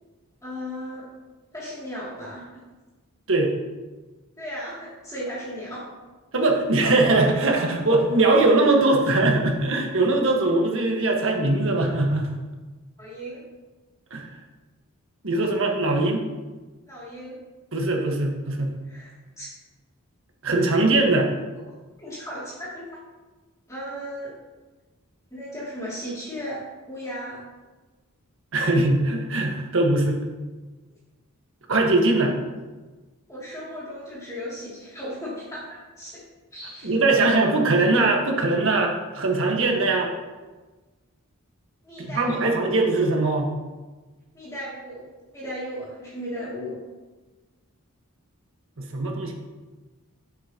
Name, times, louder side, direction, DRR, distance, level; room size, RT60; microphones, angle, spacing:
voice 1, 0.4-1.1 1.5-2.5 4.4-5.9 13.0-13.4 16.9-17.3 18.8-19.5 22.0-23.0 23.7-24.3 25.3-27.4 33.3-36.2 36.5-37.5 41.8-42.6 44.3-45.0 45.3-46.8, equal, 15° left, -9 dB, 2.7 m, -36 dB
voice 2, 6.3-12.3 14.1-14.2 15.2-16.2 17.7-18.7 20.4-21.3 28.5-30.2 31.7-32.3 36.8-40.1 42.0-43.5 48.8-49.3, right 2 dB, 65° right, 1 dB, 1.5 m, -21 dB
11.0 x 7.8 x 3.0 m, 1.2 s
head